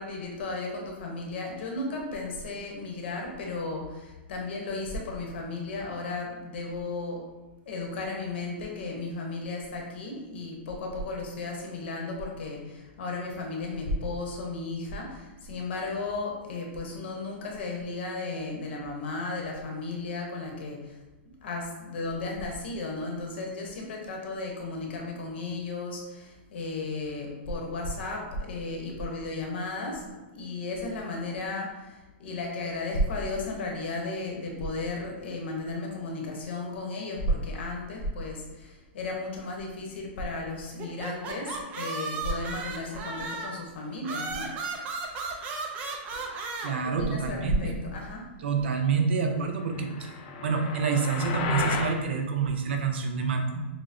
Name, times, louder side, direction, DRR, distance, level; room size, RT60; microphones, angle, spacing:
voice 1, 0.0-7.3 7.6-21.0 21.4-44.5 46.1-46.3 46.8-48.3, left 2 dB, 65° left, 0 dB, 1.0 m, -34 dB
sound 1, 40.8-43.6 44.0-46.7, right 3 dB, 25° right, 0.4 m, -35 dB
voice 2, 46.6-47.8 48.4-50.1 50.4-53.7, right 5 dB, 65° right, 4 dB, 0.6 m, -27 dB
sound 2, 49.7-52.0, left 5 dB, 45° left, 0.4 m, -33 dB
6.3 x 2.1 x 2.6 m, 1.1 s
hypercardioid pair, 160°, 6 cm